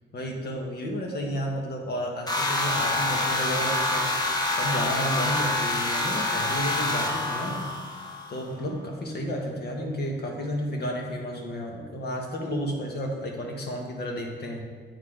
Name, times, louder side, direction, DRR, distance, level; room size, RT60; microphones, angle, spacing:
voice 1, 0.1-4.1 4.5-7.6 8.3-14.6, equal, 55° left, 1 dB, 1.4 m, -32 dB
sound 1, 2.3-8.4, left 2 dB, 20° left, 1.2 m, -27 dB
8.4 x 4.1 x 5.0 m, 1.5 s
cardioid pair, 90°, 20 cm